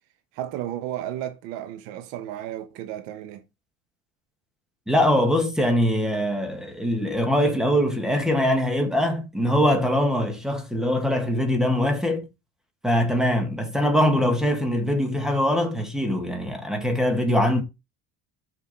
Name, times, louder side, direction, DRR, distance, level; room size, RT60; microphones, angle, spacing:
voice 1, 0.3-3.4, right 12 dB, 85° right, 1.3 m, -33 dB
voice 2, 4.9-12.3 12.8-17.6, equal, ahead, 1.7 m, -22 dB
6.5 x 6.3 x 5.4 m
cardioid pair, 160°, 32 cm